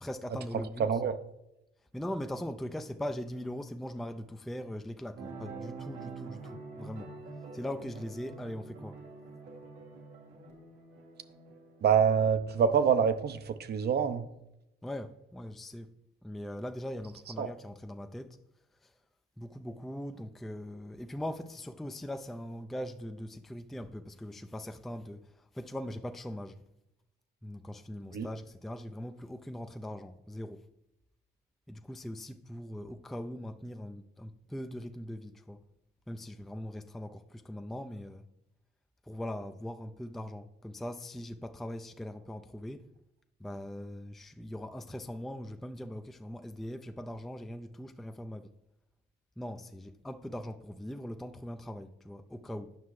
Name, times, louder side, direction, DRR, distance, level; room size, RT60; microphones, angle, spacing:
voice 1, 0.0-0.9 1.9-7.1 7.5-9.0 14.8-15.9 16.2-18.4 18.8-18.9 19.4-26.6 27.4-30.6 31.7-35.6 36.1-38.2 39.0-42.9 43.4-48.5 49.4-52.8, left 1 dB, ahead, 0.4 m, -41 dB
voice 2, 0.8-1.2 11.8-14.3 17.4-17.5 28.1-28.3, right 7 dB, 55° right, 0.7 m, -26 dB
sound 1, 5.2-12.6, right 4 dB, 90° right, 1.6 m, -46 dB
9.3 x 5.6 x 3.1 m
cardioid pair, 90°, 20 cm